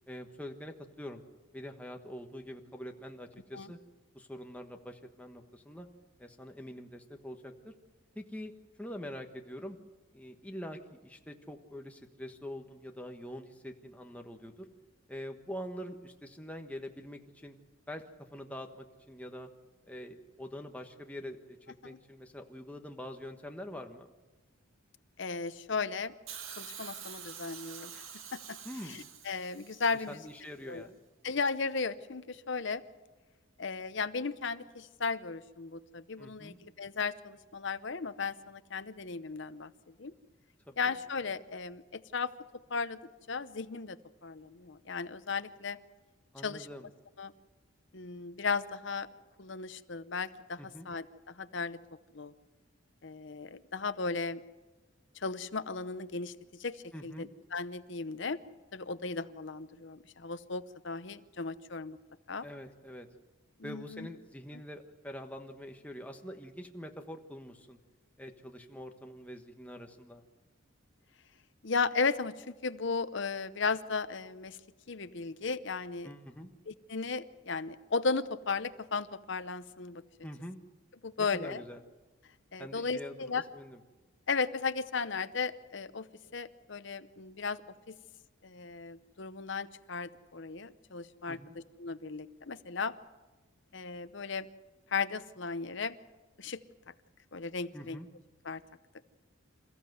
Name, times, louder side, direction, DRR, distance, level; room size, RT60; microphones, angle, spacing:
voice 1, 0.1-1.2 1.5-3.8 4.1-5.9 6.2-7.7 8.1-8.5 8.8-9.8 10.1-14.7 15.1-17.6 17.9-18.0 18.3-19.5 19.9-21.6 21.8-24.1 28.6-29.0 29.9-31.0 36.2-36.6 40.7-41.0 46.3-46.9 50.6-50.9 56.9-57.3 62.4-63.1 63.6-67.8 68.2-70.2 76.0-76.5 80.2-80.6 81.2-81.8 82.6-83.8 91.3-91.5 97.7-98.1, equal, 5° left, 3 dB, 1.3 m, -45 dB
voice 2, 25.2-26.1 26.6-28.0 28.5-28.6 28.9-30.2 30.7-30.9 31.2-32.8 33.6-39.7 40.0-40.1 40.8-42.3 42.7-43.0 43.3-45.8 46.4-46.7 47.2-47.3 47.9-49.1 49.4-51.8 52.1-52.3 53.0-54.4 55.2-56.3 56.6-56.8 57.0-58.4 58.7-62.0 62.3-62.5 63.6-64.1 71.6-74.6 74.9-76.1 76.7-80.0 81.0-81.6 82.5-83.4 84.3-86.1 86.3-87.6 87.9-88.0 88.4-91.4 91.8-92.9 93.7-94.5 94.9-95.9 96.4-96.6 97.3-98.0 98.4-98.6, left 4 dB, 55° left, 13 dB, 0.8 m, -35 dB
Hiss, 26.3-30.4 31.4-31.5, right 8 dB, 75° right, 1.9 m, -47 dB
27.5 x 15.0 x 7.9 m, 1.2 s
head